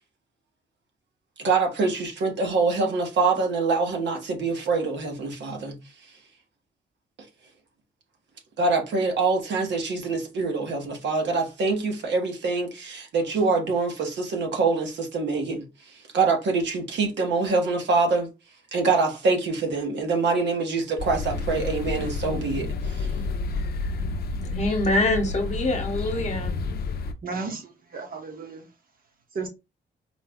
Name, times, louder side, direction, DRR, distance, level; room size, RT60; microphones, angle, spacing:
voice 1, 1.4-5.8 8.6-18.3 18.7-23.1, right 4 dB, 75° right, 1.2 m, -25 dB
sound 1, 21.0-27.1, left 3 dB, 55° left, 0.5 m, -30 dB
voice 2, 24.4-26.5, left 1 dB, 40° left, 1.0 m, -25 dB
voice 3, 27.2-28.7 29.3-29.5, right 4 dB, 50° right, 1.2 m, -34 dB
4.5 x 2.2 x 3.5 m
wide cardioid pair, 150°, 19 cm